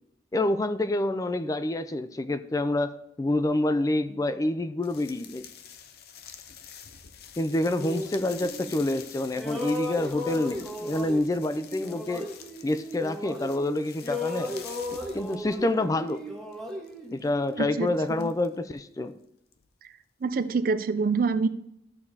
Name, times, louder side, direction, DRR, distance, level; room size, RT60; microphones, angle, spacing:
voice 1, 0.3-5.5 7.4-12.3 12.6-14.6 15.1-16.3 17.1-19.1, left 1 dB, 20° left, 12 dB, 0.3 m, -27 dB
sound 1, 4.8-16.2 16.5-18.8 19.5-19.7 20.3-20.4, left 8 dB, 60° left, 0.6 m, -47 dB
sound 2, 7.7-9.0 9.3-13.7 14.0-17.8, left 1 dB, 5° left, 1.3 m, -36 dB
voice 2, 17.6-18.3 19.8-19.9 20.2-21.5, right 4 dB, 55° right, 12 dB, 0.4 m, -26 dB
13.0 x 6.6 x 2.8 m, 0.81 s
head